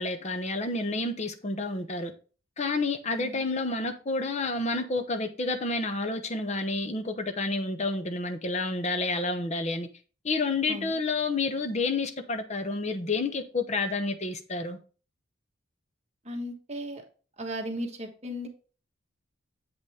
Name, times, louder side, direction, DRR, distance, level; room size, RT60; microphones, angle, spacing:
voice 1, 0.0-2.1 2.6-9.9 10.2-14.8, left 3 dB, 35° left, 0.8 m, -29 dB
voice 2, 10.7-11.0 16.2-17.0 17.4-18.5, equal, 35° right, 1.4 m, -36 dB
8.0 x 5.4 x 3.5 m
head